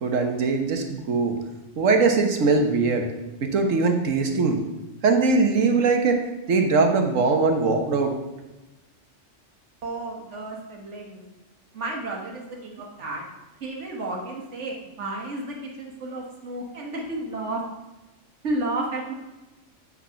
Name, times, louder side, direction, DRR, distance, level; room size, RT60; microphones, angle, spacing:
voice 1, 0.0-1.4 1.8-3.1 3.4-4.6 5.0-6.2 6.5-8.1, right 4 dB, 85° right, 5 dB, 1.5 m, -21 dB
voice 2, 9.8-11.2 11.7-13.2 13.6-17.6 18.4-19.1, right 2 dB, 65° right, -1 dB, 1.8 m, -32 dB
7.9 x 6.3 x 5.7 m, 1.1 s
omnidirectional pair, 1.3 m